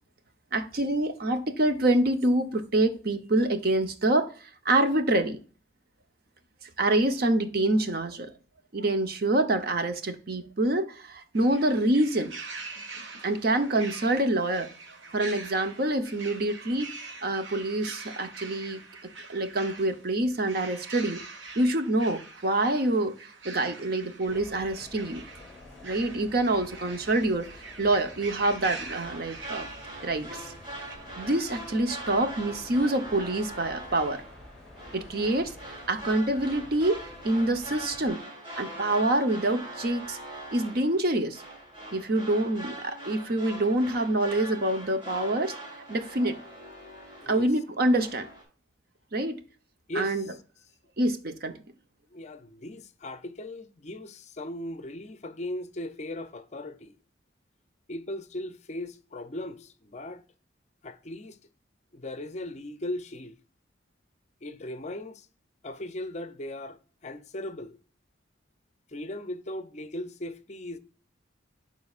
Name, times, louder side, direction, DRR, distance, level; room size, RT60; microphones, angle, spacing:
voice 1, 0.5-4.3 4.6-5.4 6.8-8.3 8.7-12.3 13.2-14.7 15.1-18.8 19.3-21.2 21.6-23.1 23.4-25.2 25.8-29.7 30.0-30.5 31.2-34.2 34.9-37.0 37.2-38.2 38.6-40.2 40.5-41.4 41.9-45.5 45.9-46.4 47.3-48.3 49.1-49.4 50.0-50.2 51.0-51.5, right 1 dB, 55° right, 0.8 m, -26 dB
sound 1, 11.3-30.9, right 3 dB, 85° right, 1.3 m, -44 dB
sound 2, 24.3-38.1, left 2 dB, 5° left, 2.3 m, -49 dB
sound 3, 28.5-47.6 47.9-48.4, right 1 dB, 30° right, 3.4 m, -42 dB
voice 2, 47.2-47.5 49.9-50.4 52.1-56.9 57.9-60.2 60.8-61.4 61.9-63.3 64.4-65.3 65.6-66.8 67.0-67.8 68.9-70.8, left 1 dB, 35° left, 0.6 m, -38 dB
11.5 x 4.2 x 2.4 m
head